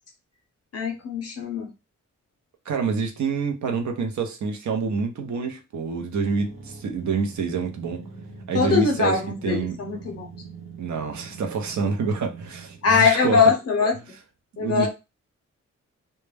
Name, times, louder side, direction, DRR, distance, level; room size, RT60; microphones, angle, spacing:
voice 1, 0.7-1.7 8.5-10.3 12.8-13.9 14.6-14.9, left 5 dB, 55° left, 0.6 m, -21 dB
voice 2, 2.7-8.1 8.5-9.8 10.8-13.5 14.6-14.9, right 5 dB, 70° right, 0.6 m, -27 dB
sound 1, 6.2-13.0, right 4 dB, 45° right, 0.8 m, -42 dB
2.2 x 2.1 x 3.2 m
wide cardioid pair, 175°, 30 cm